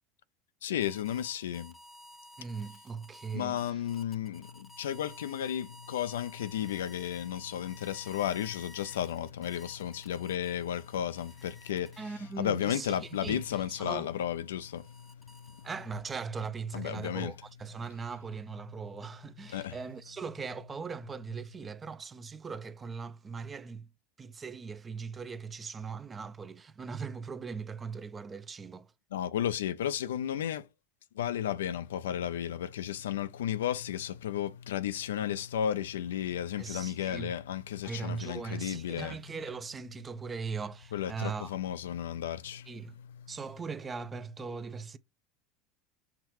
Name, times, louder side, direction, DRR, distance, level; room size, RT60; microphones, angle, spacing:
voice 1, 0.6-1.7 3.3-12.0 12.4-15.7 16.7-17.3 19.5-19.8 29.1-30.7 31.1-39.2 40.9-42.7, left 10 dB, 85° left, 0.4 m, -33 dB
sound 1, 0.8-12.3 12.7-16.1, left 1 dB, 10° left, 0.8 m, -54 dB
voice 2, 2.4-3.8 12.0-14.1 15.6-23.9 24.2-28.9 36.6-37.3 37.8-41.6 42.7-42.9 43.3-45.0, right 5 dB, 25° right, 0.5 m, -40 dB
5.9 x 3.1 x 2.9 m
hypercardioid pair, 90°, 0 cm